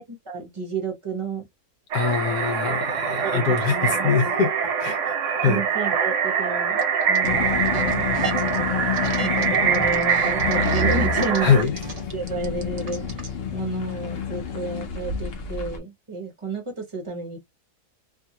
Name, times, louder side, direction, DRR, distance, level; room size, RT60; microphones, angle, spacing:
voice 1, 0.0-1.5 3.2-4.4 5.4-8.1 9.2-11.5 12.1-13.3 13.5-17.4, right 4 dB, 25° right, 0.8 m, -31 dB
voice 2, 1.9-4.5 4.8-5.6 11.4-11.8, left 6 dB, 80° left, 1.1 m, -23 dB
sound 1, 1.9-11.6, right 6 dB, 60° right, 1.0 m, -24 dB
sound 2, 6.8-7.3 7.6-8.6 8.9-13.4, right 2 dB, 80° right, 0.3 m, -38 dB
sound 3, 7.2-15.8, left 6 dB, 55° left, 0.7 m, -29 dB
2.7 x 2.5 x 2.7 m
omnidirectional pair, 1.6 m